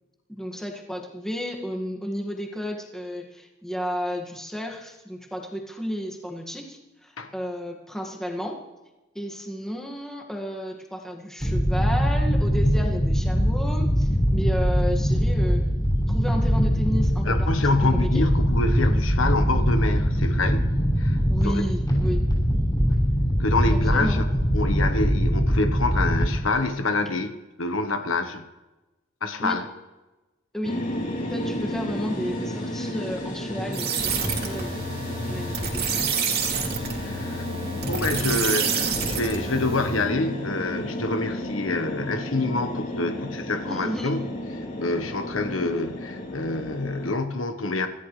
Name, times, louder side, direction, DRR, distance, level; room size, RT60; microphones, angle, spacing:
voice 1, 0.3-8.6 9.1-15.7 16.1-17.7 18.0-18.3 21.3-22.3 23.9-24.2 29.4-29.6 30.5-30.8 31.3-34.8 35.3-36.0 43.7-44.2, equal, ahead, 0 dB, 1.9 m, -32 dB
sound 1, 11.4-26.5, equal, 20° left, 6.2 m, -22 dB
voice 2, 17.2-20.6 21.0-21.7 22.9-23.0 23.4-24.2 24.5-28.4 29.2-29.6 36.0-36.2 37.0-37.5 37.8-44.2 44.8-47.9, left 2 dB, 85° left, 7 dB, 1.2 m, -27 dB
sound 2, 30.6-47.1, left 1 dB, 40° left, 3.6 m, -33 dB
sound 3, 33.7-40.1, right 5 dB, 55° right, 2.7 m, -28 dB
26.0 x 14.0 x 3.3 m, 1.1 s
head